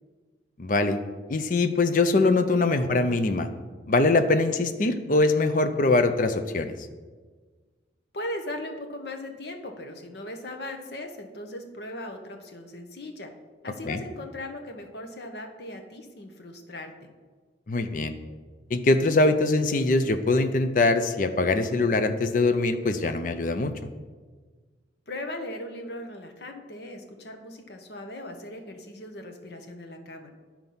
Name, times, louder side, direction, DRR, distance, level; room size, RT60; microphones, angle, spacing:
voice 1, 0.6-1.0 1.3-3.5 3.9-6.7 13.9-14.0 17.7-18.1 18.7-23.7, left 2 dB, 45° left, 8 dB, 0.5 m, -23 dB
voice 2, 8.1-13.3 13.6-17.1 25.1-30.3, left 1 dB, 65° left, 4 dB, 1.0 m, -38 dB
11.0 x 4.5 x 5.5 m, 1.4 s
head